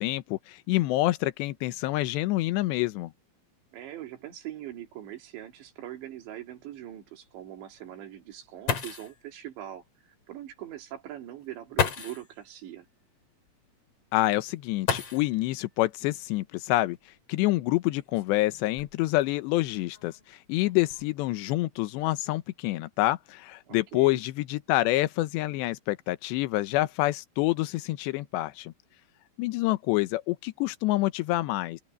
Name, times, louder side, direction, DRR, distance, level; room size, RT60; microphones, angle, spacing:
voice 1, 0.0-3.1 14.1-17.0 17.3-28.7 29.4-31.8, left 18 dB, 75° left, 2.9 m, -27 dB
voice 2, 3.7-9.8 10.3-12.9 23.7-24.2, right 12 dB, 70° right, 4.7 m, -42 dB
sound 1, 4.8-4.9 5.3-5.4 6.0-6.1 8.3-8.4 8.7-9.2 10.5-10.6 11.7-12.3 14.8-15.6 16.9-17.0 17.8-19.2 19.9-20.3 20.6-21.0, left 6 dB, 40° left, 2.7 m, -32 dB
open air
omnidirectional pair, 5.4 m